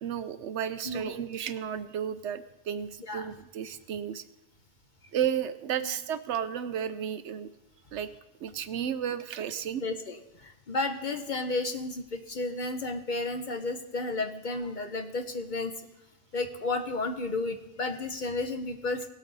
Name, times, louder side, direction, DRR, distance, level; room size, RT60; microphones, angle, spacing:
voice 1, 0.0-4.2 5.1-7.5 7.9-8.1 8.4-9.8, right 9 dB, 70° right, 12 dB, 0.9 m, -33 dB
voice 2, 3.0-3.3 5.8-5.9 9.8-15.7 16.3-19.1, left 2 dB, 45° left, 6 dB, 0.8 m, -32 dB
18.5 x 8.3 x 4.0 m, 0.95 s
omnidirectional pair, 1.3 m